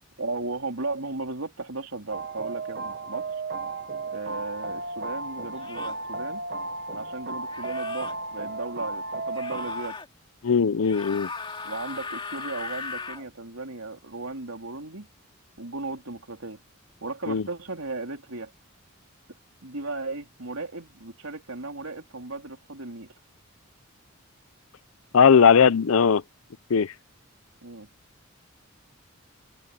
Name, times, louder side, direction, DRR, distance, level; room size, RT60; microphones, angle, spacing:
voice 1, 0.2-3.3 4.1-6.4 6.9-10.0 11.6-15.1 15.6-16.6 17.0-18.5 19.6-23.1 27.6-27.9, right 3 dB, 80° right, 3.8 m, -36 dB
sound 1, 2.1-9.9, right 3 dB, 45° right, 1.0 m, -34 dB
sound 2, 4.2-4.4 5.6-6.0 7.5-8.1 9.3-10.1 10.8-13.2, left 4 dB, 25° left, 2.4 m, -38 dB
voice 2, 10.4-11.3 17.3-17.4 25.1-26.2 26.7-26.9, left 6 dB, 80° left, 0.5 m, -18 dB
open air
head